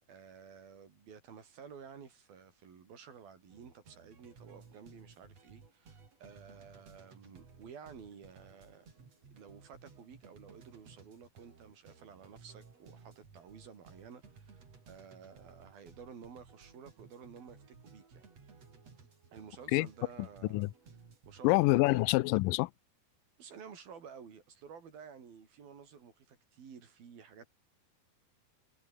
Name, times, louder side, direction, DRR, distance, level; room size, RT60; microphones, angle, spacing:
voice 1, 0.1-8.9 9.3-14.6 14.9-18.2 19.3-20.7 21.3-22.0 23.4-27.5, right 6 dB, 85° right, 5.8 m, -52 dB
sound 1, 3.5-22.2, right 5 dB, 45° right, 5.1 m, -58 dB
voice 2, 21.4-22.7, left 21 dB, 80° left, 2.2 m, -26 dB
omnidirectional pair, 4.1 m